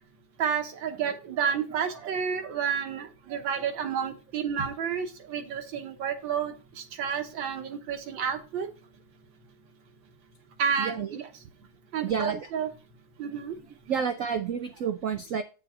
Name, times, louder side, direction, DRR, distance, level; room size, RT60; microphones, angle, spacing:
voice 1, 0.4-8.7 10.6-11.3 11.9-12.7 13.2-13.6, right 7 dB, 65° right, 6 dB, 1.8 m, -30 dB
voice 2, 10.8-11.1 12.0-12.5 13.9-15.4, right 7 dB, 85° right, 7 dB, 0.7 m, -29 dB
8.5 x 6.2 x 4.2 m, 0.34 s
omnidirectional pair, 2.3 m